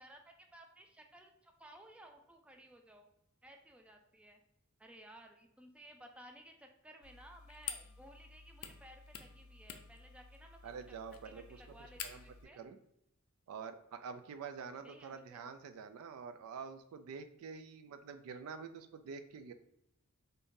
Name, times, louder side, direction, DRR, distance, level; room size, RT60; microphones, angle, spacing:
voice 1, 0.0-3.1 3.4-4.4 4.8-10.6 10.9-11.0 11.2-12.6 14.8-15.5, right 1 dB, 5° right, 3 dB, 0.3 m, -57 dB
sound 1, 7.0-12.4, left 8 dB, 70° left, 0.4 m, -49 dB
voice 2, 10.6-12.2 12.5-12.8 13.5-19.5, right 6 dB, 85° right, 9 dB, 0.3 m, -47 dB
2.6 x 2.6 x 3.6 m, 0.79 s
head